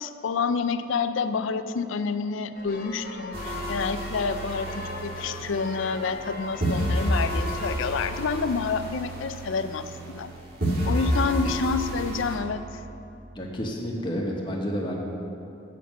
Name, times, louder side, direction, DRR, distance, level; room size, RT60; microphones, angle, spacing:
voice 1, 0.0-10.3 10.8-12.8, left 5 dB, 80° left, 11 dB, 0.4 m, -28 dB
sound 1, 2.5-8.4, left 2 dB, 45° left, 0.9 m, -40 dB
sound 2, 3.3-6.3 6.6-10.3 10.6-12.4, right 1 dB, 50° right, 1.6 m, -30 dB
voice 2, 13.3-15.0, equal, 25° left, -1 dB, 1.0 m, -30 dB
7.2 x 5.6 x 7.4 m, 2.7 s
head